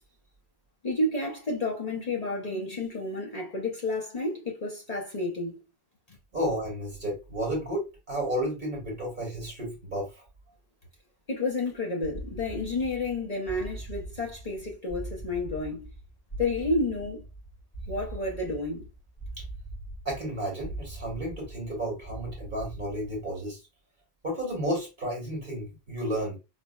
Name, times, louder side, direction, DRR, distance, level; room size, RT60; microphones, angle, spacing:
voice 1, 0.8-5.6 6.1-6.2 11.3-15.9 16.4-17.2 17.9-18.9, left 2 dB, 40° left, 0.8 m, -30 dB
voice 2, 6.3-10.1 20.0-23.6 24.2-26.4, equal, 50° right, 1.2 m, -32 dB
sound 1, 12.0-23.4, right 2 dB, 70° left, 2.0 m, -41 dB
4.2 x 2.1 x 2.2 m
omnidirectional pair, 1.1 m